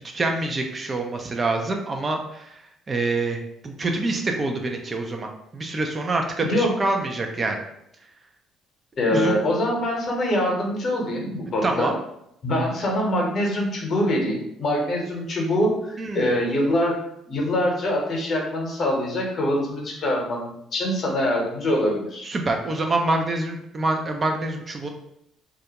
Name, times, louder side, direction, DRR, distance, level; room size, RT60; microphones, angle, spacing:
voice 1, 0.1-2.6 2.9-7.6 9.1-9.4 11.6-11.9 16.0-16.3 22.2-24.9, right 2 dB, 35° right, 3 dB, 0.4 m, -26 dB
voice 2, 6.4-6.8 9.0-11.9 12.4-17.0 17.3-22.3, left 1 dB, 55° left, -1 dB, 0.8 m, -24 dB
2.3 x 2.1 x 2.8 m, 0.79 s
hypercardioid pair, 60°, 0 cm